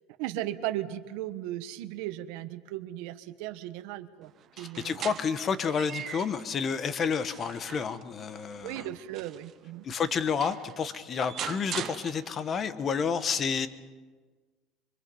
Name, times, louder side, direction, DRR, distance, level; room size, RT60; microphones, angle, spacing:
voice 1, 0.2-4.3 4.6-5.2 8.6-9.9, right 13 dB, 65° right, 9 dB, 1.2 m, -36 dB
sound 1, 4.4-6.5 7.0-9.6 10.1-10.2 10.4-12.6, right 10 dB, 35° right, 0.7 m, -41 dB
voice 2, 4.6-8.8 9.8-13.7, left 6 dB, 25° left, 12 dB, 1.0 m, -30 dB
25.0 x 24.0 x 5.5 m, 1.4 s
cardioid pair, 155°, 0 cm